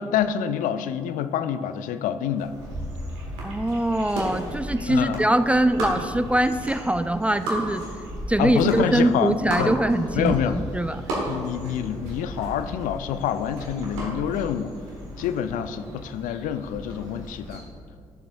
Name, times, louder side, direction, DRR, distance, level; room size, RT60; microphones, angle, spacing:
voice 1, 0.0-2.5 4.9-5.2 8.4-9.7 10.1-10.6 11.3-14.7 15.2-17.6, left 9 dB, 60° left, 11 dB, 0.4 m, -27 dB
sound 1, 2.4-17.6, equal, 75° right, 1.4 m, -34 dB
voice 2, 3.4-7.8 8.3-11.0, right 1 dB, 10° right, 12 dB, 0.3 m, -23 dB
11.0 x 6.9 x 2.6 m, 2.2 s
figure-of-eight pair, 40°, 15 cm